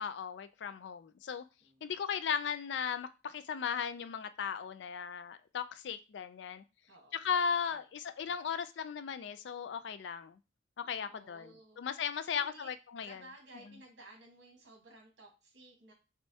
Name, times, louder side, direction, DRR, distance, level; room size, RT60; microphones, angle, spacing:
voice 1, 0.0-1.4 1.8-6.6 7.1-10.4 10.8-13.2, left 7 dB, 70° left, 0.4 m, -37 dB
voice 2, 1.6-2.1 6.9-7.3 7.7-7.9 8.1-8.4 11.1-11.8 12.3-12.7 13.0-15.9, right 2 dB, 75° right, 1.5 m, -56 dB
6.1 x 2.2 x 2.7 m
head